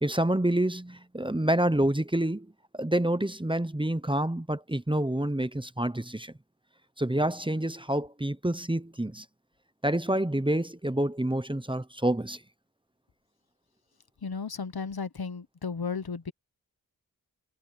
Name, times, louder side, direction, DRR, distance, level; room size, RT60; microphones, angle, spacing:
voice 1, 0.0-6.3 7.0-9.2 9.8-12.4, right 1 dB, 15° right, 0.9 m, -28 dB
voice 2, 14.2-16.3, left 5 dB, 75° left, 1.1 m, -34 dB
wide cardioid pair, 40°, 38 cm